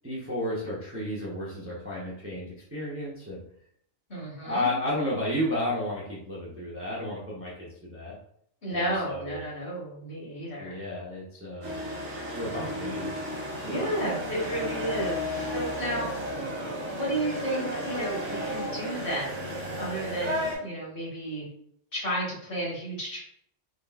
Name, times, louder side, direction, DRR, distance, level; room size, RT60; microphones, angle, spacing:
voice 1, 0.0-3.4 4.4-8.2 8.7-9.4 10.6-11.8 12.3-13.9, left 1 dB, 15° right, -6 dB, 0.5 m, -33 dB
voice 2, 4.1-4.7 8.6-10.8 13.7-16.1 16.9-21.5 21.9-23.2, right 1 dB, 50° left, -5 dB, 1.4 m, -32 dB
sound 1, 11.6-20.6, equal, 75° right, 1.3 m, -33 dB
3.6 x 2.4 x 2.3 m, 0.68 s
omnidirectional pair, 1.2 m